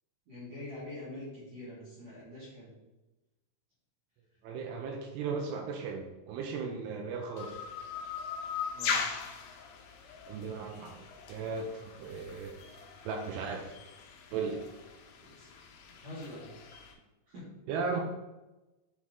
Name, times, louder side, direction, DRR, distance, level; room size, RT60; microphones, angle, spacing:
voice 1, 0.3-2.7 8.7-9.1 15.2-15.5 16.0-16.5 17.3-17.6, left 1 dB, 50° right, -10 dB, 2.2 m, -45 dB
voice 2, 4.4-7.6 10.3-12.6 13.1-13.8 14.3-14.6 17.7-18.0, right 5 dB, 85° right, 2 dB, 2.2 m, -36 dB
sound 1, 7.4-16.9, left 6 dB, 80° left, 3.0 m, -40 dB
8.6 x 3.0 x 3.7 m, 1.1 s
omnidirectional pair, 5.1 m